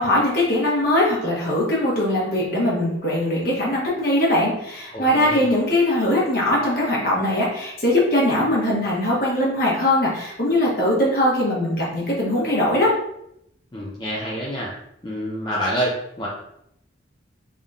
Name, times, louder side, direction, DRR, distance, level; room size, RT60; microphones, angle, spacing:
voice 1, 0.0-12.9, left 1 dB, 50° left, -5 dB, 1.2 m, -21 dB
voice 2, 4.9-5.5 13.7-14.7 15.0-16.3, equal, 25° left, -5 dB, 0.5 m, -27 dB
3.9 x 3.5 x 2.4 m, 0.76 s
head